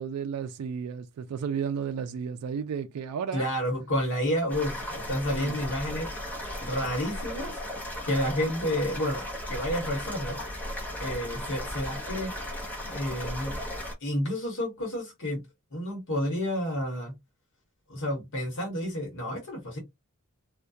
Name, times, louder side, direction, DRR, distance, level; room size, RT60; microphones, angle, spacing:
voice 1, 0.0-3.5 5.3-5.6, right 7 dB, 75° right, 0.3 m, -33 dB
voice 2, 3.3-6.1 6.6-7.5 8.0-10.4 11.0-12.3 12.8-13.6 14.0-15.4 15.7-17.1 17.9-19.8, equal, 55° left, 1.0 m, -30 dB
sound 1, 4.5-13.9, left 1 dB, 5° left, 0.7 m, -36 dB
2.3 x 2.1 x 2.5 m
head